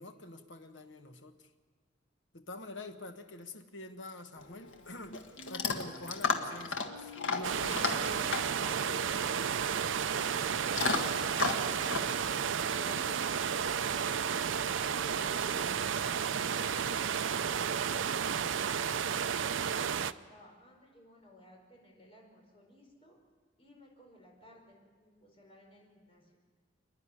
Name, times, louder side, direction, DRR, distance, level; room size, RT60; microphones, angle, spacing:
voice 1, 0.0-1.4 2.3-5.2 5.5-8.4 8.6-9.2, left 2 dB, 70° left, 6 dB, 1.4 m, -46 dB
Chewing mastication / Dog, 4.4-13.5, left 4 dB, 85° left, 1.7 m, -36 dB
sound 1, 7.4-20.1, right 7 dB, 85° right, 0.5 m, -32 dB
voice 2, 8.1-8.5 14.9-18.9 19.7-23.2 23.6-26.4, left 1 dB, 30° left, -1 dB, 5.1 m, -57 dB
28.0 x 10.5 x 9.9 m, 1.5 s
head